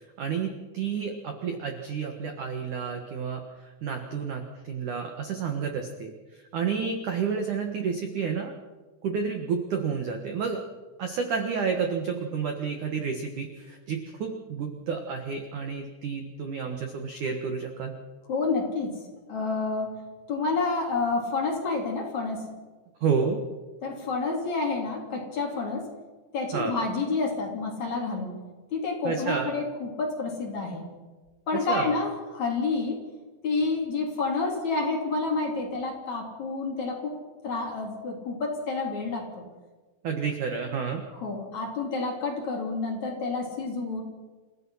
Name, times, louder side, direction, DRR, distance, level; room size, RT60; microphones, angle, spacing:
voice 1, 0.2-3.4 3.8-8.6 9.0-10.6 11.0-18.0 23.0-23.4 26.5-26.7 29.0-29.5 31.5-31.9 40.0-41.1, right 6 dB, 65° right, 4 dB, 2.0 m, -30 dB
voice 2, 18.3-19.0 19.3-20.0 20.3-22.5 23.8-25.9 26.3-28.4 28.7-30.8 31.5-33.0 33.4-37.2 37.4-39.4 41.1-44.0, left 3 dB, 40° left, 0 dB, 4.0 m, -29 dB
29.0 x 16.0 x 5.7 m, 1.3 s
omnidirectional pair, 5.9 m